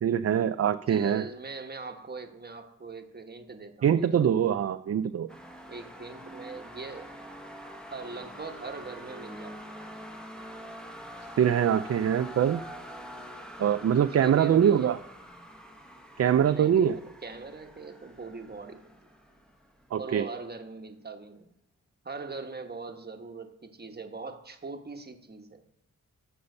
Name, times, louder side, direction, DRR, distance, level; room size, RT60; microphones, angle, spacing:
voice 1, 0.0-1.2 3.8-5.3 11.4-12.6 13.6-15.0 16.2-17.0 19.9-20.3, right 9 dB, 45° right, 10 dB, 0.4 m, -23 dB
voice 2, 0.9-4.1 5.7-7.1 7.8-9.7 14.2-14.9 16.5-18.8 20.0-21.5 22.0-25.6, right 4 dB, 30° right, 5 dB, 1.2 m, -41 dB
sound 1, 5.3-20.1, equal, ahead, 1.1 m, -45 dB
14.0 x 5.5 x 6.6 m, 0.80 s
wide cardioid pair, 120°, 34 cm